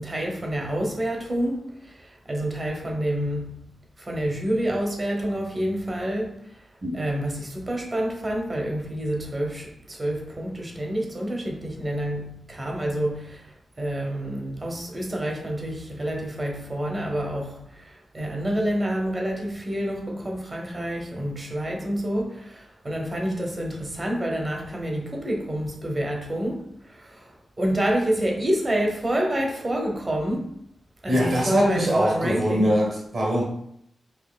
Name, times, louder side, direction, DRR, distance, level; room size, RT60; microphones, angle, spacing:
voice 1, 0.0-3.6 4.0-6.6 6.9-30.5 31.0-32.7, right 1 dB, 25° right, 0.7 m, -28 dB
voice 2, 31.1-33.4, equal, 50° right, 1.1 m, -22 dB
5.1 x 2.8 x 2.2 m
wide cardioid pair, 145°, 0 cm